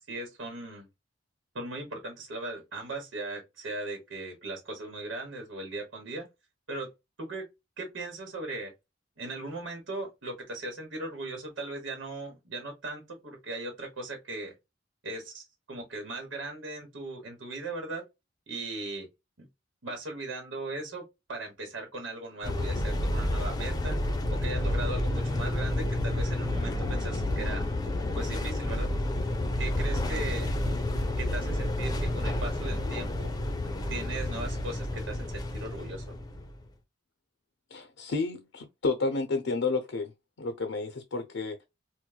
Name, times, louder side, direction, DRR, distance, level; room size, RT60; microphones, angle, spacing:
voice 1, 0.1-0.9 1.5-6.3 6.7-6.9 7.2-7.5 7.8-8.7 9.2-14.5 15.0-18.0 18.5-19.1 19.4-19.5 19.8-24.0 24.4-27.6 28.1-28.9 29.6-30.5 31.2-33.3 33.9-36.2, right 2 dB, 80° right, 1.1 m, -38 dB
sound 1, 22.4-36.7, left 1 dB, 20° left, 0.6 m, -30 dB
voice 2, 37.7-40.1 40.4-41.6, left 3 dB, 80° left, 0.6 m, -31 dB
4.5 x 2.1 x 2.2 m
head